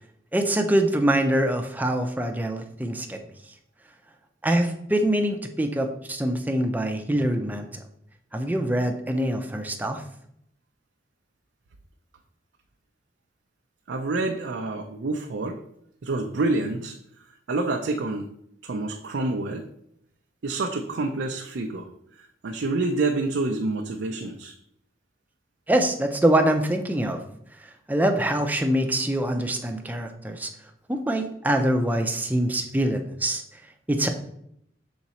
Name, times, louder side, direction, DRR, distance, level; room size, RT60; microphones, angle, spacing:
voice 1, 0.3-3.2 4.4-7.8 8.3-10.0 25.7-27.2 27.9-30.5 30.9-33.4 33.9-34.1, right 1 dB, 10° right, 5 dB, 0.5 m, -24 dB
voice 2, 13.9-15.6 16.0-17.0 17.5-18.3 18.6-19.6 20.4-21.9 22.4-24.5, right 2 dB, 80° right, 3 dB, 0.5 m, -27 dB
6.0 x 3.9 x 4.2 m, 0.73 s
head